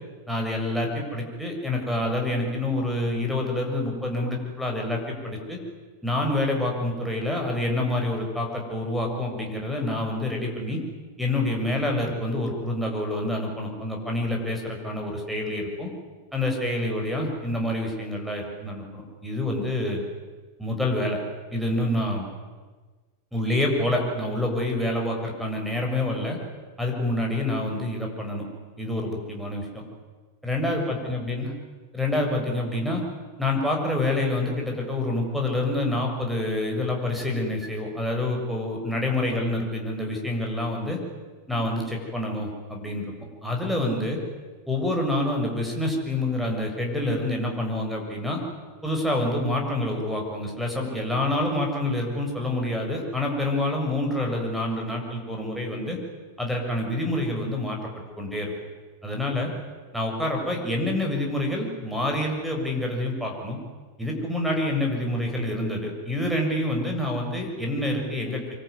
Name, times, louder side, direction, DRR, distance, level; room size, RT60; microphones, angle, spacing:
voice 1, 0.3-5.6 6.0-10.8 11.2-15.9 16.3-20.0 20.6-21.2 21.5-22.3 23.3-26.4 26.8-28.4 28.8-29.8 30.4-31.5 31.9-33.0 33.4-41.0 41.5-43.1 43.4-44.2 44.7-48.4 48.8-56.0 56.4-57.9 58.2-58.5 59.0-59.5 59.9-63.6 64.0-68.4, left 1 dB, ahead, 0 dB, 7.0 m, -27 dB
26.0 x 23.5 x 9.7 m, 1.4 s
figure-of-eight pair, 90°, 0 cm